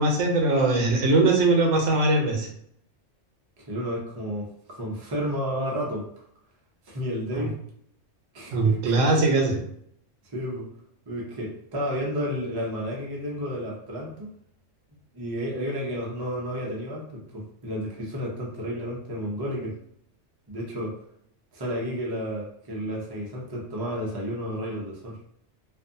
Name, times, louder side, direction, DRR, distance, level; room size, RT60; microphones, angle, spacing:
voice 1, 0.0-2.5 7.3-7.5 8.5-9.6, right 2 dB, 80° right, 2 dB, 1.0 m, -21 dB
voice 2, 3.7-6.1 6.9-7.6 8.3-9.1 10.2-10.7 11.1-14.3 15.1-19.8 20.5-21.0 21.5-25.2, equal, 30° right, -3 dB, 0.5 m, -31 dB
2.5 x 2.3 x 2.6 m, 0.68 s
omnidirectional pair, 1.3 m